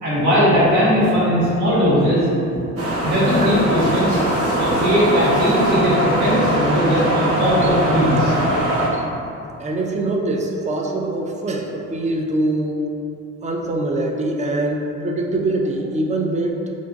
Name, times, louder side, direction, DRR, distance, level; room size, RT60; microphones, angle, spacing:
voice 1, 0.0-4.2 4.6-8.3, equal, 70° right, -8 dB, 1.4 m, -19 dB
sound 1, 2.8-8.9, right 1 dB, 50° right, 0.8 m, -20 dB
voice 2, 6.7-7.1 8.8-9.0 9.6-12.9 13.4-16.6, right 2 dB, 25° right, 1 dB, 0.4 m, -24 dB
2.5 x 2.4 x 3.9 m, 2.6 s
cardioid pair, 90°, 30 cm